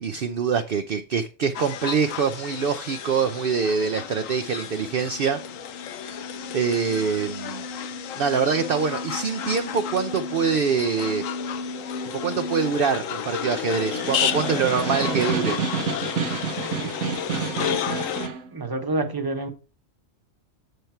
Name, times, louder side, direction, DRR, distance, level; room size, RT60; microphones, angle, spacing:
voice 1, 0.0-5.4 6.5-7.6 8.2-11.2 12.0-15.6, right 6 dB, 55° right, 0.7 m, -24 dB
sound 1, 1.5-18.3, left 9 dB, 75° left, 1.1 m, -32 dB
sound 2, 4.4-12.7, left 2 dB, 50° left, 1.4 m, -38 dB
Snare drum, 13.6-18.5, right 6 dB, 85° right, 1.4 m, -29 dB
voice 2, 16.6-17.0 17.7-17.9 18.5-19.5, right 2 dB, 20° right, 1.0 m, -29 dB
8.0 x 6.7 x 4.4 m
omnidirectional pair, 1.4 m